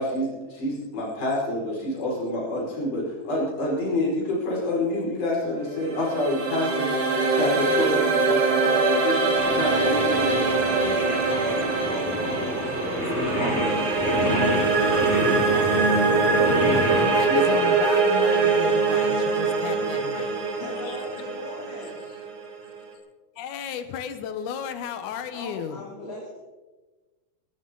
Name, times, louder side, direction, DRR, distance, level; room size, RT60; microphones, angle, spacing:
voice 1, 0.0-6.9 7.4-8.0 8.3-10.5 17.3-17.8, left 1 dB, 85° left, -5 dB, 7.3 m, -27 dB
sound 1, 5.7-22.8, right 4 dB, 50° right, 3.2 m, -23 dB
Singing, 9.4-17.1, left 1 dB, 20° left, 3.8 m, -29 dB
voice 2, 10.9-11.3 12.8-13.8 16.7-20.3 20.9-21.0 23.4-25.9, left 8 dB, 70° left, 10 dB, 2.2 m, -35 dB
voice 3, 20.6-22.0 25.3-26.4, left 2 dB, 35° left, -5 dB, 3.6 m, -39 dB
18.0 x 17.0 x 3.9 m, 1.2 s
omnidirectional pair, 4.2 m